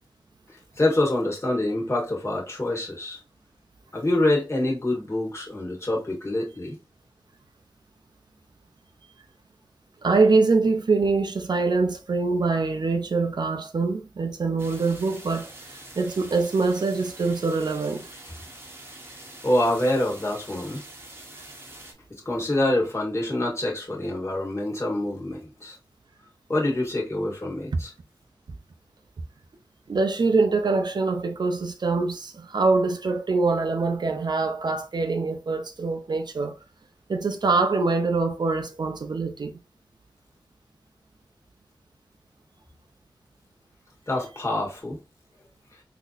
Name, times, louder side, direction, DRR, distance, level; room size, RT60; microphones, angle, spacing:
voice 1, 0.8-3.2 3.9-6.8 19.4-20.8 22.2-25.8 26.5-27.9 44.1-45.0, left 1 dB, 35° left, 1.4 m, -26 dB
voice 2, 10.0-18.1 29.9-36.6 37.1-39.6, right 3 dB, 60° right, 0.6 m, -24 dB
sound 1, 14.6-21.9, right 1 dB, 30° right, 0.9 m, -45 dB
3.9 x 2.7 x 2.4 m
cardioid pair, 50°, 8 cm